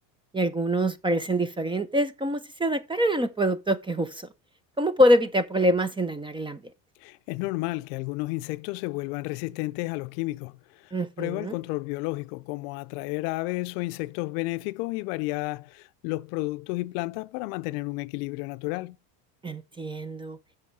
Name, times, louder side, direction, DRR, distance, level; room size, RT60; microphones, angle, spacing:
voice 1, 0.3-4.3 4.8-6.6 10.9-11.6 19.4-20.4, equal, 10° right, 0.5 m, -25 dB
voice 2, 7.0-10.5 11.2-19.0, left 22 dB, 75° left, 0.6 m, -31 dB
7.6 x 6.2 x 4.1 m
supercardioid pair, 120°, 47 cm